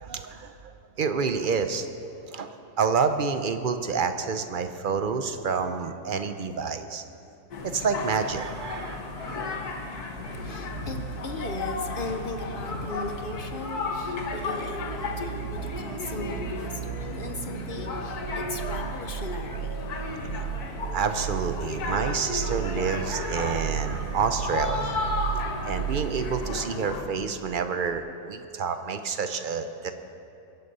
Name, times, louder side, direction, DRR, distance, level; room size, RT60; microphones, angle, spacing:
voice 1, 0.0-1.9 2.3-2.5 2.8-7.0 7.7-9.6 15.5-15.8 20.0-20.1 20.9-25.0 25.6-29.9, right 5 dB, 50° right, 8 dB, 0.6 m, -28 dB
sound 1, 7.5-27.0, left 3 dB, 85° left, 1.8 m, -34 dB
voice 2, 10.0-20.4, left 3 dB, 45° left, 5 dB, 0.8 m, -38 dB
sound 2, 10.1-27.6 27.9-28.0, right 10 dB, 85° right, 1.2 m, -36 dB
22.5 x 8.3 x 5.5 m, 2.6 s
omnidirectional pair, 1.6 m